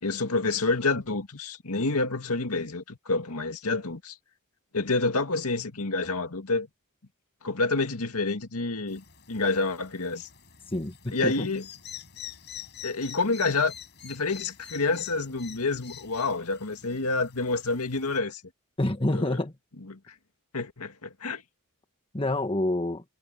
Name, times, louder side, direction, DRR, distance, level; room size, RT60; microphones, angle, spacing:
voice 1, 0.0-4.2 4.7-6.7 7.4-10.3 11.1-11.6 12.8-13.7 14.0-18.4 19.1-19.4 19.9-20.1 20.5-21.4, left 3 dB, 90° left, 2.1 m, -28 dB
sound 1, 8.9-18.2, left 10 dB, 50° left, 6.7 m, -46 dB
voice 2, 10.7-11.5 18.8-19.5 22.1-23.0, left 1 dB, 25° left, 1.5 m, -27 dB
head